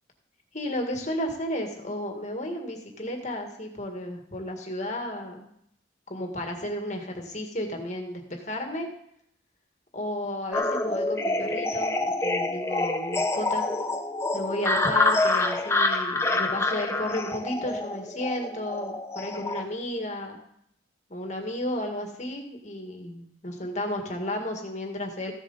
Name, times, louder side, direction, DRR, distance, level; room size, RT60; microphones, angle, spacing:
voice 1, 0.5-5.5 6.1-8.9 9.9-13.7 14.3-20.4 21.1-25.3, left 1 dB, 40° left, 3 dB, 1.8 m, -33 dB
sound 1, 10.5-19.6, left 2 dB, 15° left, 0.7 m, -27 dB
15.0 x 7.4 x 4.1 m, 0.72 s
head